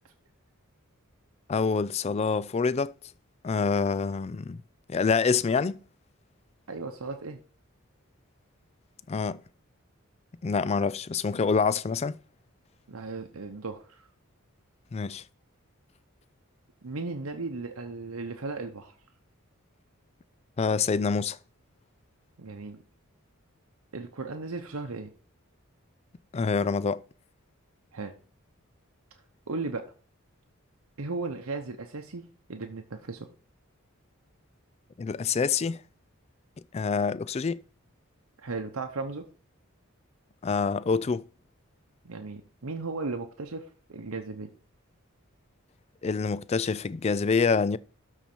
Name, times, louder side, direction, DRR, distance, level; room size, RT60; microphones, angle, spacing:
voice 1, 1.5-2.9 3.4-4.6 4.9-5.8 9.1-9.4 10.4-12.1 14.9-15.2 20.6-21.4 26.3-27.0 35.0-35.8 36.7-37.6 40.4-41.2 46.0-47.8, left 5 dB, 30° left, 0.3 m, -26 dB
voice 2, 6.7-7.4 12.9-14.1 16.8-19.0 22.4-22.8 23.9-25.1 27.9-28.1 29.5-29.9 31.0-33.3 38.4-39.3 42.0-44.5, right 3 dB, 80° right, 0.8 m, -36 dB
12.5 x 4.4 x 4.5 m
head